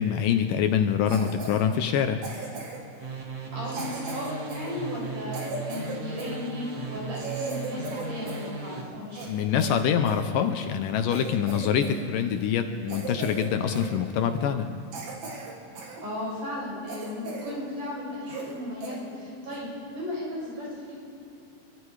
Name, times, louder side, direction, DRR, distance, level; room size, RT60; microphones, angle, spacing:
voice 1, 0.0-2.2 9.3-14.7, left 8 dB, 75° left, 7 dB, 2.4 m, -25 dB
Cough, 1.1-1.6 2.2-2.9 3.7-6.4 6.8-6.9 7.1-8.5 8.8-10.3 10.7-10.8 11.1-12.0 12.3-12.5 12.9-13.5 13.7-14.0 14.5-14.6 14.9-16.0 16.4-16.5 16.9-17.6 17.9-18.0 18.3-18.6 18.8-19.0 19.5-19.7, right 3 dB, 85° right, 4.7 m, -37 dB
sound 1, 3.0-8.8, right 4 dB, 35° right, 1.7 m, -37 dB
voice 2, 3.4-9.2 16.0-21.0, left 1 dB, 60° right, -5 dB, 9.1 m, -35 dB
25.5 x 24.0 x 4.9 m, 2.6 s
omnidirectional pair, 4.2 m